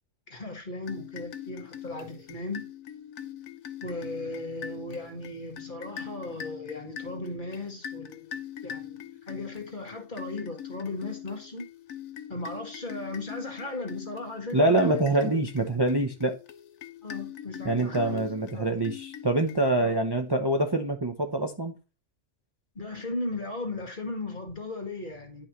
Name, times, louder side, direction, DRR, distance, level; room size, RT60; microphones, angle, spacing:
voice 1, 0.3-2.7 3.8-8.3 8.6-8.9 9.3-11.7 12.3-15.3 17.0-18.2 18.5-18.6 19.8-20.0 22.8-25.5, left 2 dB, 40° left, 2.0 m, -36 dB
sound 1, 0.8-20.0, left 9 dB, 85° left, 1.2 m, -42 dB
voice 2, 14.5-16.4 17.6-21.7, right 2 dB, 25° right, 0.7 m, -25 dB
10.5 x 5.7 x 3.1 m
omnidirectional pair, 1.4 m